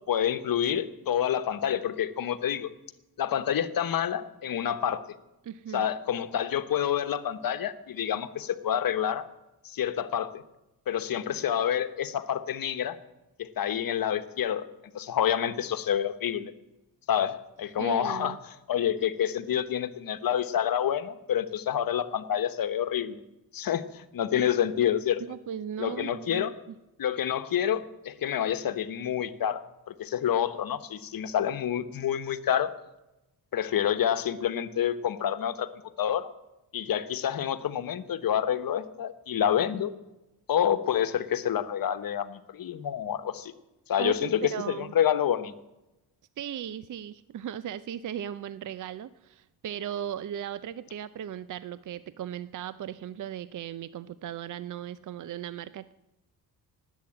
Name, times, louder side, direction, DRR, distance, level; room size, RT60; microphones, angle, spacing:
voice 1, 0.1-2.7 3.2-5.0 5.7-9.3 9.6-10.4 10.9-13.0 13.4-14.7 14.9-16.5 17.1-18.4 18.7-23.2 23.5-25.2 25.8-26.5 27.0-29.6 29.9-32.7 33.5-35.7 36.0-36.3 36.7-39.9 40.5-43.5 43.9-44.4 44.7-45.5, left 9 dB, 60° left, 11 dB, 1.2 m, -28 dB
voice 2, 5.4-5.8 17.8-18.4 25.2-26.5 44.0-44.9 46.4-55.9, right 10 dB, 50° right, 15 dB, 0.6 m, -37 dB
18.5 x 8.3 x 8.7 m, 0.97 s
cardioid pair, 90°, 39 cm